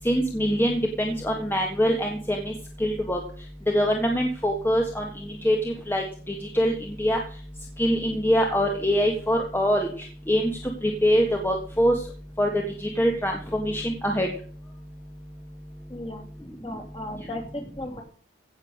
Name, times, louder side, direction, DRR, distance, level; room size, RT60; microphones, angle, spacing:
voice 1, 0.0-2.5 2.8-3.2 3.7-5.0 5.4-6.0 6.5-6.7 7.0-7.2 7.8-9.9 10.3-10.5 10.8-11.9 12.4-12.5 13.0-14.3, equal, 10° left, 2 dB, 1.6 m, -23 dB
voice 2, 15.9-16.3 16.6-18.0, left 1 dB, 30° left, 3 dB, 3.0 m, -36 dB
16.0 x 6.9 x 6.5 m, 0.43 s
head